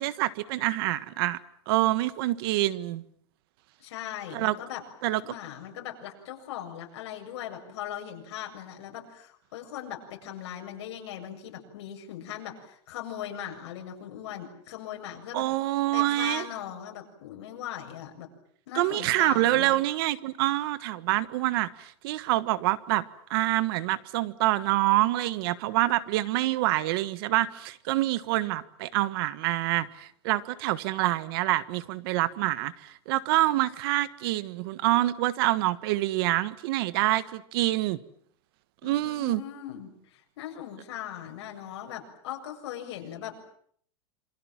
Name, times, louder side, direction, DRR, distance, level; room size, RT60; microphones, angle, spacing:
voice 1, 0.0-1.4 1.7-3.0 4.3-4.5 5.0-5.2 15.3-16.4 18.7-23.0 23.3-38.0 38.8-39.4, right 16 dB, 55° right, 1.5 m, -26 dB
voice 2, 3.8-4.8 5.2-15.5 15.9-18.3 18.7-19.8 38.8-43.4, left 11 dB, 70° left, 7.6 m, -39 dB
28.0 x 26.0 x 7.5 m
supercardioid pair, 165°, 15 cm